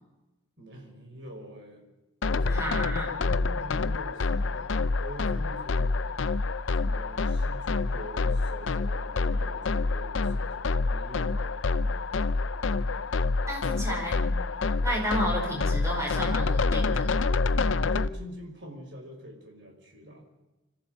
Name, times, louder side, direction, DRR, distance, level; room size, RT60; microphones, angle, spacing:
voice 1, 0.6-1.8 2.3-5.9 6.8-11.6 17.5-20.3, equal, 60° right, 2 dB, 5.1 m, -44 dB
sound 1, 2.2-18.1, left 3 dB, 75° left, 0.6 m, -27 dB
voice 2, 2.5-3.1 13.5-14.2 14.8-17.1, equal, 15° right, -1 dB, 5.6 m, -31 dB
25.5 x 14.5 x 7.7 m, 1.1 s
head